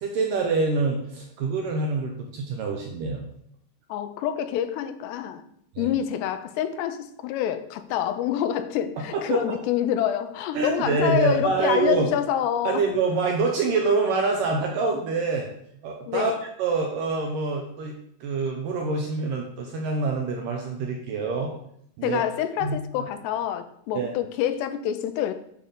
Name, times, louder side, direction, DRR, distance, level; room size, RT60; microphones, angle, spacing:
voice 1, 0.0-3.3 5.8-5.9 9.1-9.6 10.5-12.1 12.6-15.5 15.8-16.3 16.6-17.9 18.2-21.5 22.0-22.2 22.6-22.8 23.9-24.1, right 4 dB, 75° right, 2.1 m, -26 dB
voice 2, 3.9-5.4 5.8-12.8 16.1-16.4 22.0-25.3, left 10 dB, 90° left, 2.7 m, -27 dB
8.9 x 3.8 x 6.7 m
omnidirectional pair, 4.8 m